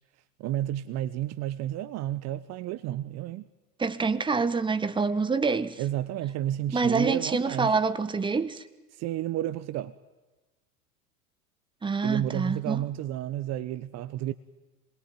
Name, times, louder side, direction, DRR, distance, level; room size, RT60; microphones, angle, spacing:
voice 1, 0.4-3.4 5.8-7.8 8.9-9.9 12.0-14.3, right 13 dB, 35° right, 1.0 m, -31 dB
voice 2, 3.8-5.8 6.7-8.6 11.8-12.8, right 4 dB, 10° right, 1.4 m, -26 dB
27.0 x 22.0 x 9.4 m
figure-of-eight pair, 85°, 44 cm